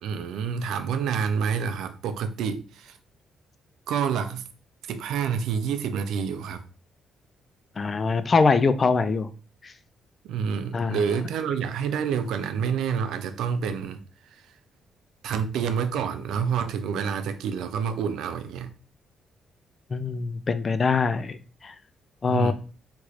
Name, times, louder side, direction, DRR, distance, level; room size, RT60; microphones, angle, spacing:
voice 1, 0.0-3.0 3.9-4.4 4.9-6.6 10.2-14.0 14.3-14.4 15.2-18.7 22.3-22.5, right 7 dB, 85° right, 0.4 m, -28 dB
voice 2, 7.8-9.3 9.6-9.7 10.7-11.0 19.9-21.4 21.6-21.7 22.2-22.5, left 4 dB, 35° left, 0.3 m, -23 dB
3.1 x 3.0 x 2.4 m
cardioid pair, 90°, 0 cm